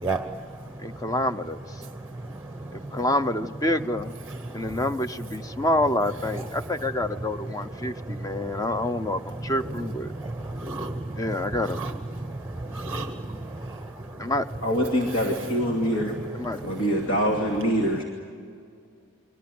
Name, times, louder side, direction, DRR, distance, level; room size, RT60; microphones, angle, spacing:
voice 1, 0.8-1.8 2.7-4.1 4.5-10.1 11.2-11.8 14.2-14.5 16.4-16.6, left 1 dB, 15° left, 10 dB, 0.7 m, -27 dB
voice 2, 2.2-2.9 4.3-4.8 7.8-8.6 10.1-11.2 11.6-14.3, right 2 dB, 10° right, 7 dB, 1.0 m, -33 dB
voice 3, 14.6-16.2 16.6-18.0, equal, 75° left, 1 dB, 2.8 m, -24 dB
29.5 x 24.0 x 7.8 m, 2.3 s
head